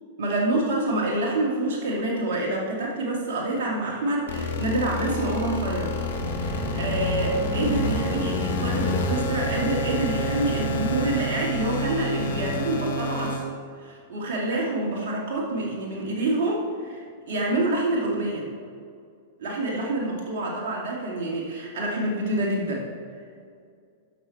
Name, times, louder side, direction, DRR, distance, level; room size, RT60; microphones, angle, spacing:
voice 1, 0.2-6.0 6.4-13.4 13.8-18.5 19.4-22.9, right 2 dB, 65° right, -2 dB, 2.3 m, -27 dB
sound 1, 4.3-13.4, left 1 dB, 75° left, 1.4 m, -28 dB
12.0 x 6.2 x 4.2 m, 2.2 s
hypercardioid pair, 115°, 0 cm